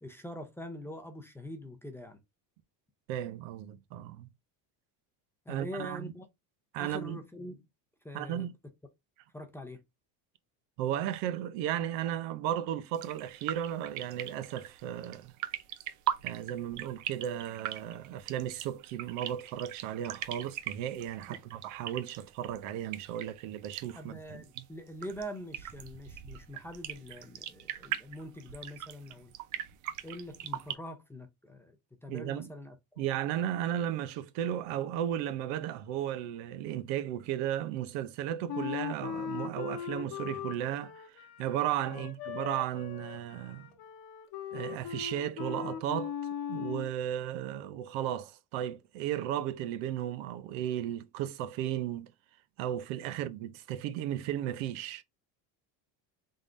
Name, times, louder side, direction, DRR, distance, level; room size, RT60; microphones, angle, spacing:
voice 1, 0.0-2.2 5.5-6.3 6.8-7.6 8.0-8.5 9.3-9.8 21.3-21.4 23.9-29.3 30.0-31.8 32.0-33.0 41.9-42.1, left 1 dB, 5° left, 0.5 m, -44 dB
voice 2, 3.1-4.3 5.5-6.1 6.7-7.2 8.1-8.5 10.8-15.3 16.2-24.4 32.1-32.5 33.0-43.7 44.5-46.1 46.5-52.1 52.6-55.0, right 11 dB, 80° right, 0.8 m, -35 dB
sound 1, 12.9-30.7, right 11 dB, 45° right, 0.5 m, -40 dB
Wind instrument woodwind instrument, 38.5-46.9, left 9 dB, 60° left, 1.0 m, -39 dB
3.7 x 3.5 x 2.5 m
cardioid pair, 150°, 43 cm